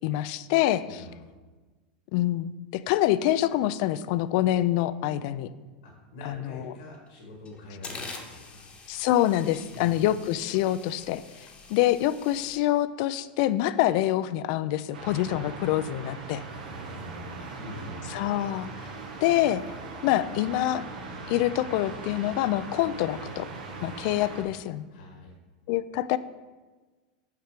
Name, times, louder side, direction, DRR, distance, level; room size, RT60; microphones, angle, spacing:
voice 1, 0.0-1.0 2.1-5.5 6.2-6.7 8.9-11.2 11.7-16.4 18.1-18.7 19.2-19.6 20.0-20.8 21.3-23.5 23.8-24.9 25.7-26.2, left 14 dB, 60° left, 15 dB, 0.4 m, -26 dB
voice 2, 0.8-1.2 5.8-8.6 9.7-9.9 16.6-18.1 24.9-25.3, left 1 dB, 90° left, -1 dB, 1.8 m, -44 dB
sound 1, 6.9-7.1 7.4-12.6, left 4 dB, 25° left, 1.0 m, -45 dB
sound 2, 14.9-24.4, right 3 dB, 90° right, 1.2 m, -40 dB
6.5 x 4.7 x 5.1 m, 1.3 s
supercardioid pair, 120°, 4 cm